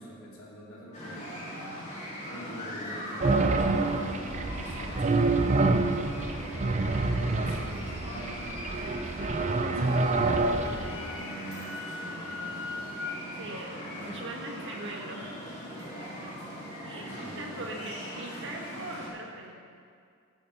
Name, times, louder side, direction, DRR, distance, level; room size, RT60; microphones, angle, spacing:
voice 1, 0.0-1.3 2.2-8.9 9.6-13.5 13.9-14.3 15.1-15.3 17.0-17.7, right 1 dB, 90° left, -3 dB, 2.4 m, -44 dB
sound 1, 0.9-19.1, equal, 35° left, 3.0 m, -40 dB
sound 2, 3.2-11.0, right 3 dB, 35° right, 0.5 m, -27 dB
voice 2, 10.2-10.6 13.3-15.2 15.8-15.9 16.2-16.3 16.8-19.6, right 2 dB, 60° right, 0 dB, 1.6 m, -41 dB
Wind instrument woodwind instrument, 10.3-13.2, left 4 dB, 70° left, 1.2 m, -40 dB
12.0 x 7.2 x 6.0 m, 2.3 s
head